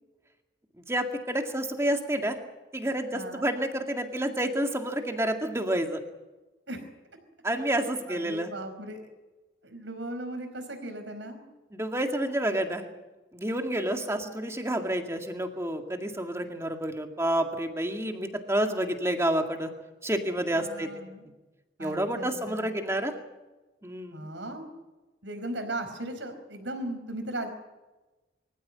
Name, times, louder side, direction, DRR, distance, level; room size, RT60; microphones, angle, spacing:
voice 1, 0.9-2.4 2.7-6.0 7.4-8.5 11.7-12.8 13.3-19.7 20.0-21.0 21.8-23.1 23.8-24.3, right 1 dB, 15° right, 4 dB, 2.0 m, -29 dB
voice 2, 3.1-3.5 6.7-6.8 7.8-9.0 9.6-11.4 20.5-21.2 21.8-22.7 24.1-24.7 25.2-27.5, right 1 dB, 80° right, 7 dB, 5.0 m, -37 dB
24.0 x 15.0 x 9.7 m, 1.1 s
head